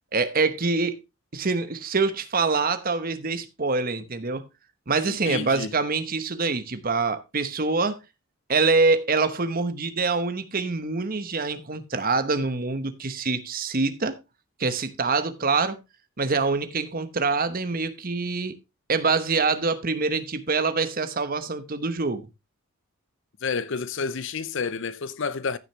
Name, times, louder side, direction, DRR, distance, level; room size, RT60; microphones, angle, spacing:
voice 1, 0.1-1.0 1.3-4.5 4.9-8.0 8.5-14.2 14.6-15.8 16.2-18.6 18.9-22.3, right 4 dB, 40° right, 1.0 m, -25 dB
voice 2, 5.1-5.7 23.4-25.6, left 5 dB, 55° left, 0.6 m, -30 dB
14.5 x 6.4 x 3.1 m
head